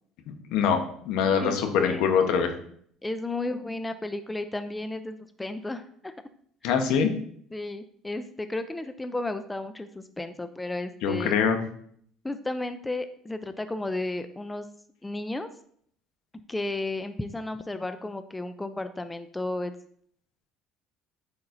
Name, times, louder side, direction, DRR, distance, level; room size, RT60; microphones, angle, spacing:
voice 1, 0.3-0.8 1.0-2.5 6.6-7.1 11.0-11.6, left 7 dB, 70° left, 6 dB, 1.0 m, -23 dB
voice 2, 1.3-2.0 3.0-6.1 6.6-6.7 7.5-11.3 12.2-14.7 15.0-15.5 16.5-19.7, left 2 dB, 10° left, 9 dB, 0.4 m, -33 dB
9.4 x 4.2 x 2.6 m, 0.62 s
supercardioid pair, 100°, 0 cm